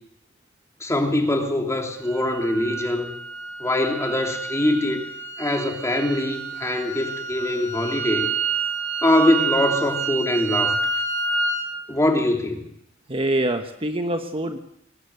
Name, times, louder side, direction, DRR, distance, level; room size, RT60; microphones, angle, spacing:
voice 1, 0.8-3.1 3.6-5.0 5.4-8.3 9.0-10.8 11.9-12.6, left 1 dB, 15° left, 3 dB, 3.3 m, -23 dB
sound 1, 2.0-11.7, right 4 dB, 85° right, 4.9 m, -28 dB
voice 2, 13.1-14.6, right 1 dB, 30° right, 6 dB, 1.3 m, -25 dB
23.0 x 18.5 x 8.0 m, 0.77 s
head